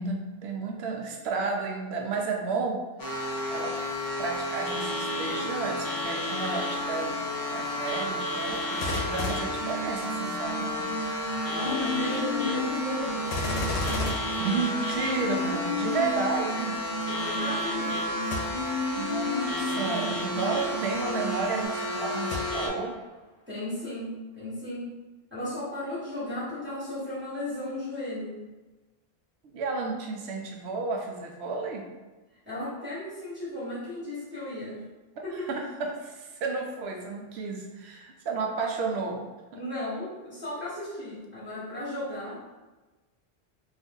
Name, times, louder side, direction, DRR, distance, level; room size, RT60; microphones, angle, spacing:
voice 1, 0.0-3.7 4.2-7.2 7.5-10.9 13.7-14.1 14.4-16.8 18.5-23.0 29.4-31.9 35.5-39.2 39.5-39.6, right 4 dB, 85° right, 1 dB, 0.9 m, -32 dB
sound 1, 3.0-22.7, left 1 dB, 35° left, 0.4 m, -32 dB
Gunshot gunfire, 8.5-10.5 13.2-15.3 18.2-18.9 19.5-19.6 22.2-23.0 23.6-23.7, left 2 dB, 85° left, 0.9 m, -34 dB
sound 2, 9.6-21.7, left 1 dB, 45° right, 1.0 m, -34 dB
voice 2, 11.5-13.2 17.0-18.0 23.5-24.9 25.3-28.4 32.4-34.8 35.2-35.3 39.5-42.4, left 1 dB, 10° right, -11 dB, 1.3 m, -35 dB
2.7 x 2.4 x 3.5 m, 1.2 s
omnidirectional pair, 1.1 m